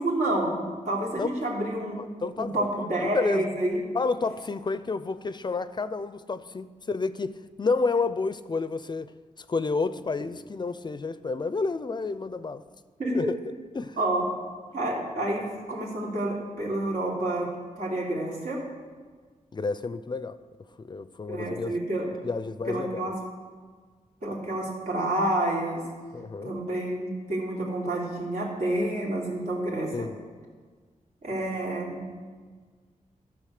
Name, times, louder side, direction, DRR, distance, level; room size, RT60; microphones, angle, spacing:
voice 1, 0.0-2.0 2.4-3.9 13.0-13.3 14.0-14.2 14.7-18.6 21.3-22.1 22.6-23.1 24.2-25.8 26.4-30.1 31.2-32.1, right 1 dB, 80° right, 3.1 m, -29 dB
voice 2, 2.0-3.5 3.9-9.1 9.4-12.6 13.1-13.3 13.7-14.0 19.5-20.4 20.8-21.8 22.2-23.1 26.1-26.5 29.9-30.1, left 4 dB, 35° left, 0.4 m, -30 dB
14.0 x 6.2 x 6.5 m
wide cardioid pair, 110°, 14 cm